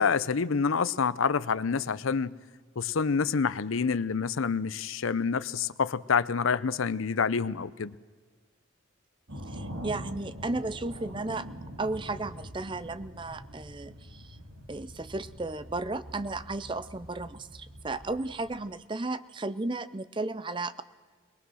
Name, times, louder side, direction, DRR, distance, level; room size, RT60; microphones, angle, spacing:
voice 1, 0.0-2.3 2.8-7.9, left 5 dB, 80° left, 0.6 m, -27 dB
sound 1, 9.3-18.6, equal, 80° right, 2.4 m, -44 dB
voice 2, 9.5-11.5 11.8-14.4 14.7-20.8, right 2 dB, 25° right, 0.5 m, -34 dB
22.5 x 19.0 x 6.3 m
head